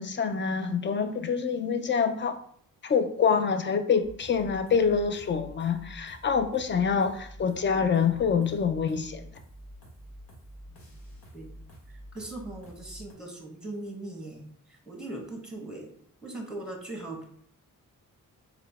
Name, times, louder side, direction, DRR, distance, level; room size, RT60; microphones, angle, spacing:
voice 1, 0.0-2.4 2.8-9.3, left 6 dB, 35° left, 0.4 m, -26 dB
sound 1, 4.0-13.1, equal, 75° left, 1.2 m, -48 dB
voice 2, 12.1-15.9 16.2-17.2, right 2 dB, ahead, 1.1 m, -39 dB
3.9 x 2.2 x 3.5 m
cardioid pair, 70°, 35 cm